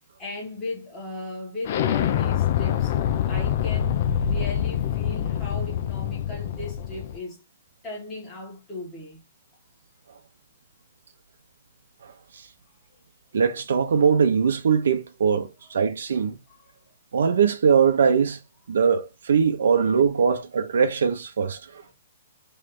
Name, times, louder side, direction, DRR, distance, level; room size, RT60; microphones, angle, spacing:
voice 1, 0.2-3.0 3.2-7.4 7.8-9.2 16.5-16.9, left 2 dB, 10° left, 1.8 m, -37 dB
Explosion, 1.6-7.2, left 9 dB, 40° left, 0.5 m, -25 dB
voice 2, 12.0-12.5 13.3-16.4 17.1-18.4 18.7-21.8, right 6 dB, 85° right, 0.7 m, -21 dB
3.3 x 3.2 x 3.7 m
hypercardioid pair, 175°, 0 cm